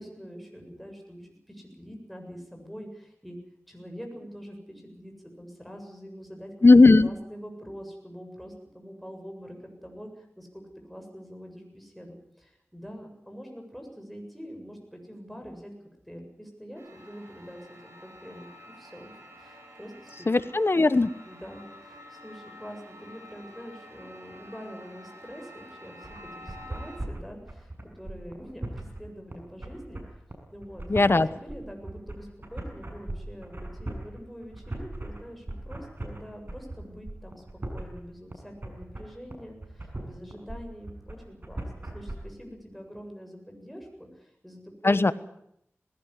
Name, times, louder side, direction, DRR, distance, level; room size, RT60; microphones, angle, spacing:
voice 1, 0.0-3.4 3.7-6.5 7.0-15.7 16.1-17.9 18.2-18.5 18.8-19.1 19.4-20.3 21.3-30.8 31.2-37.4 37.7-45.1, equal, ahead, 2 dB, 7.6 m, -44 dB
voice 2, 6.6-7.1 20.3-21.1 30.9-31.3 44.8-45.1, left 3 dB, 55° left, 15 dB, 1.1 m, -17 dB
sound 1, 16.7-27.0, left 1 dB, 75° right, 7.5 m, -49 dB
sound 2, 26.0-42.1, right 1 dB, 45° right, 6.9 m, -38 dB
20.0 x 17.0 x 9.8 m, 0.74 s
wide cardioid pair, 45°, 5 cm